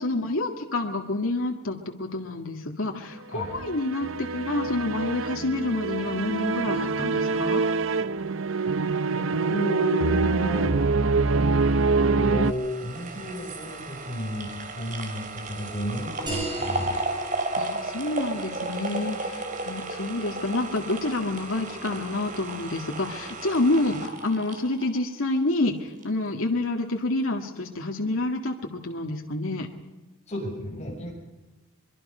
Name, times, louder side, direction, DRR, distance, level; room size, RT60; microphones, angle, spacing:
voice 1, 0.0-7.7 17.5-29.7, left 2 dB, 80° left, 2 dB, 2.0 m, -28 dB
sound 1, 3.4-12.5, right 4 dB, 70° right, 0.7 m, -25 dB
voice 2, 9.1-10.8 12.1-16.9 30.3-31.1, left 1 dB, 30° left, 0 dB, 7.1 m, -33 dB
sound 2, 12.4-25.7 26.0-26.1, right 2 dB, 40° right, 3.0 m, -34 dB
sound 3, 16.3-21.3, right 1 dB, 20° right, 7.8 m, -38 dB
24.5 x 23.0 x 5.6 m, 1.1 s
head